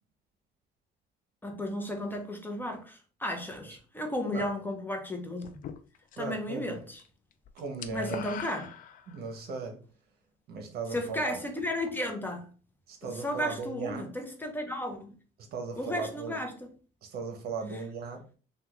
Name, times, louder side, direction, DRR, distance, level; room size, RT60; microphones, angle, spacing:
voice 1, 1.4-5.6 6.2-7.0 7.9-8.7 10.9-12.5 13.0-15.1 15.8-16.7, left 1 dB, 10° left, 0.6 m, -34 dB
sound 1, 5.4-6.4 6.7-7.1 7.3-9.4, left 8 dB, 55° left, 0.4 m, -43 dB
voice 2, 6.2-6.8 7.5-8.2 9.1-9.8 10.5-11.4 12.9-14.1 15.4-16.4 17.0-18.3, right 4 dB, 65° right, 0.9 m, -37 dB
3.5 x 2.3 x 2.9 m
cardioid pair, 110°, 17 cm